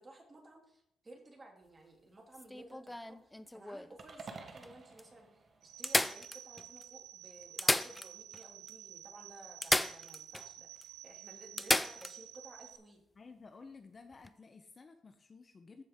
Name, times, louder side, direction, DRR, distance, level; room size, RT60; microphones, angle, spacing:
voice 1, 0.0-13.0, right 2 dB, 25° right, 1 dB, 2.5 m, -56 dB
sound 1, 2.3-3.9 4.6-4.7 5.0-5.1 5.8-6.8 7.4-8.4 8.7-8.8 9.6-10.5 10.8-10.9 11.6-12.2 14.1-14.3, left 1 dB, 10° left, 0.3 m, -33 dB
sound 2, 4.0-6.3, right 4 dB, 45° right, 1.1 m, -51 dB
sound 3, 5.6-12.8, right 12 dB, 85° right, 0.7 m, -51 dB
voice 2, 13.1-15.8, left 4 dB, 35° left, 7 dB, 0.8 m, -54 dB
14.0 x 4.7 x 3.6 m, 0.79 s
cardioid pair, 90°, 0 cm